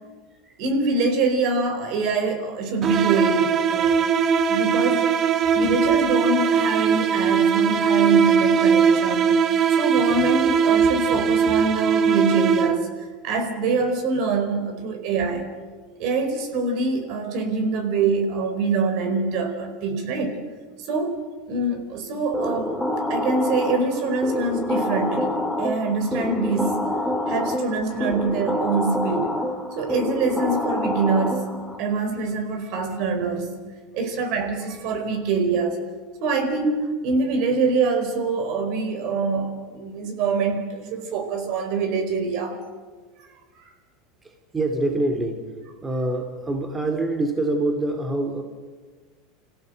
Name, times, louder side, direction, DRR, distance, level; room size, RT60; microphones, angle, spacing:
voice 1, 0.6-4.0 4.5-5.1 5.5-9.4 9.8-12.9 13.2-15.5 16.0-20.4 20.8-21.2 21.5-22.7 23.1-26.8 27.3-29.3 29.8-31.5 31.8-33.5 33.9-35.8 36.2-42.6, right 3 dB, 60° right, 5 dB, 4.7 m, -24 dB
sound 1, 2.8-13.0, right 7 dB, 40° right, 1.1 m, -20 dB
sound 2, 22.3-31.8, left 1 dB, ahead, 2.9 m, -27 dB
voice 2, 44.2-45.4 45.8-48.4, right 2 dB, 15° right, 5 dB, 2.7 m, -25 dB
27.0 x 16.5 x 8.0 m, 1.4 s
supercardioid pair, 115°, 0 cm